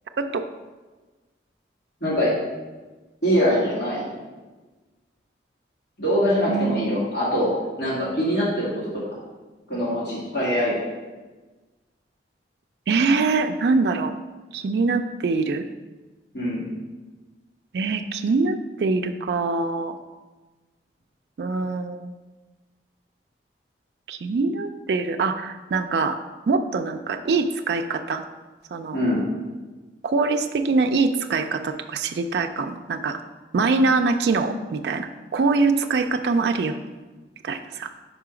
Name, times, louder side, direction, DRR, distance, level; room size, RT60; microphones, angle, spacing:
voice 1, 2.0-2.3 3.2-4.1 6.0-9.0 9.7-10.7 16.3-16.6 28.9-29.2, equal, 70° left, -8 dB, 2.2 m, -23 dB
voice 2, 6.5-7.0 12.9-14.1 14.5-15.6 17.7-20.0 21.4-22.1 24.1-26.2 26.5-28.3 28.7-29.0 30.0-33.2 33.5-36.8 37.4-37.9, right 4 dB, 70° right, 6 dB, 0.3 m, -23 dB
5.0 x 4.7 x 4.9 m, 1.2 s
head